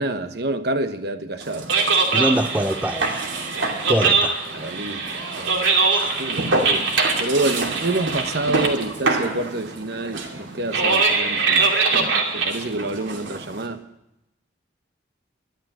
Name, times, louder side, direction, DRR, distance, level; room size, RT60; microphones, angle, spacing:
voice 1, 0.0-1.7 4.5-5.7 6.0-6.9 7.2-13.8, right 2 dB, 55° right, 1.1 m, -28 dB
sound 1, 1.4-13.7, right 4 dB, 80° right, 2.6 m, -23 dB
voice 2, 2.1-3.2 3.9-4.4 5.9-6.1, right 1 dB, 10° right, 0.5 m, -23 dB
13.0 x 12.0 x 7.5 m
head